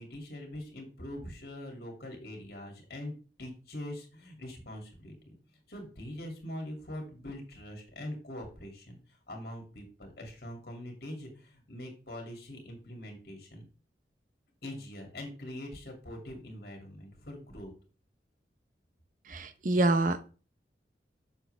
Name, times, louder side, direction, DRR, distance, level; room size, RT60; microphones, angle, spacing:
voice 1, 0.0-3.1 3.4-5.1 5.7-9.0 9.3-13.7 14.6-17.7, left 1 dB, 60° left, 2 dB, 2.4 m, -43 dB
voice 2, 19.3-20.3, right 2 dB, 45° right, 11 dB, 0.7 m, -27 dB
7.4 x 6.6 x 3.3 m, 0.35 s
head